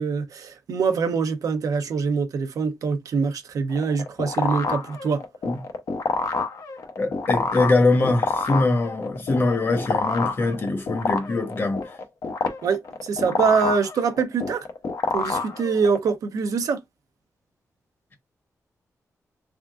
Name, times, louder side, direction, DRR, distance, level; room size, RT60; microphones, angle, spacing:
voice 1, 0.0-5.2 12.6-14.7 15.1-16.8, right 5 dB, 80° right, 0.7 m, -24 dB
sound 1, 3.7-16.1, left 4 dB, 75° left, 0.8 m, -28 dB
voice 2, 7.0-11.8, left 2 dB, 40° left, 1.0 m, -22 dB
3.6 x 3.4 x 2.4 m
wide cardioid pair, 135°, 6 cm